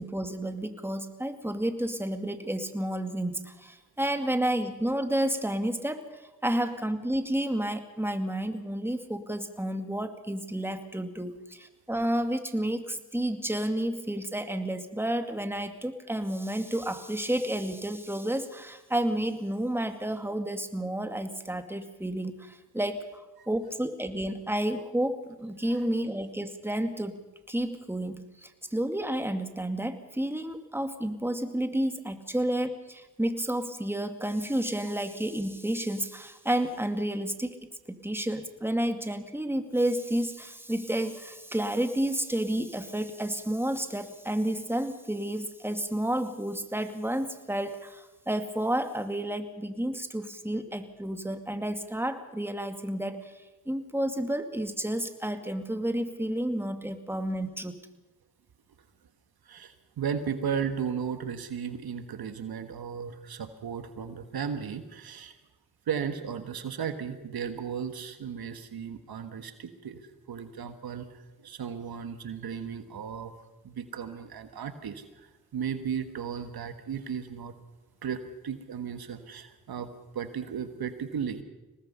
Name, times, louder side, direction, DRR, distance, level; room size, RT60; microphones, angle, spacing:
voice 1, 0.0-6.1 6.4-27.2 27.5-37.6 37.9-53.3 53.7-57.7, right 1 dB, 5° right, 7 dB, 2.3 m, -31 dB
voice 2, 59.4-65.3 65.9-73.3 73.6-75.3 75.5-77.5 78.0-79.9 80.1-81.4, right 7 dB, 75° right, 9 dB, 1.6 m, -35 dB
24.0 x 19.0 x 5.6 m, 1.1 s
cardioid pair, 45°, 37 cm